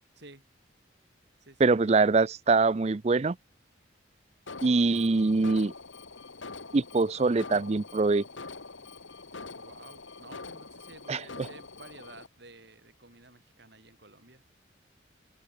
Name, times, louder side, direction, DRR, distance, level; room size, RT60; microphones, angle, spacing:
voice 1, 0.1-0.5 1.4-2.1 9.6-14.4, right 2 dB, 60° right, 4.7 m, -52 dB
voice 2, 1.6-3.4 4.6-5.7 6.7-8.2 11.1-11.2, right 3 dB, 35° right, 0.5 m, -23 dB
Alarm, 4.5-12.3, left 3 dB, 80° left, 2.1 m, -44 dB
open air
head